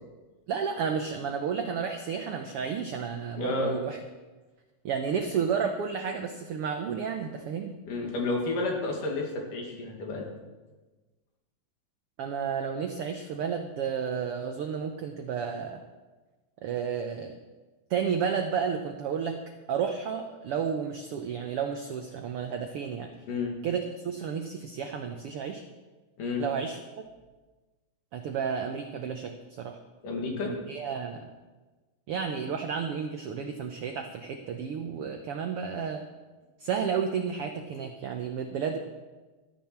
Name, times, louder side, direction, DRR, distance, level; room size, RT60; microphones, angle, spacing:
voice 1, 0.5-4.0 4.8-7.7 12.2-15.8 16.6-17.4 17.9-19.4 19.7-23.1 23.6-25.6 26.4-26.8 28.1-29.8 30.4-31.3 32.1-36.0 36.6-38.8, right 6 dB, 85° right, 5 dB, 1.3 m, -32 dB
voice 2, 3.4-3.7 7.9-10.3 23.3-23.5 26.2-26.4 30.0-30.5, left 3 dB, 75° left, 0 dB, 3.7 m, -31 dB
13.5 x 10.5 x 6.0 m, 1.2 s
omnidirectional pair, 3.7 m